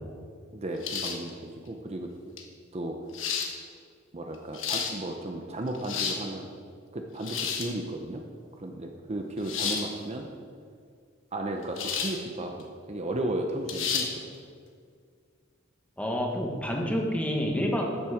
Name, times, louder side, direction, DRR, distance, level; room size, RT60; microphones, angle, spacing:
voice 1, 0.5-2.1 2.7-3.0 4.1-6.5 6.9-8.2 8.6-10.3 11.3-14.1, right 1 dB, 35° right, 3 dB, 0.8 m, -34 dB
sound 1, 0.8-1.3 2.4-2.5 3.1-3.5 4.3-4.9 5.7-6.2 7.2-7.7 9.4-9.9 11.8-12.2 12.6-12.7 13.7-14.1, left 6 dB, 75° left, 1.3 m, -31 dB
voice 2, 16.0-18.1, equal, 5° left, 0 dB, 1.4 m, -28 dB
13.0 x 7.4 x 5.0 m, 2.1 s
head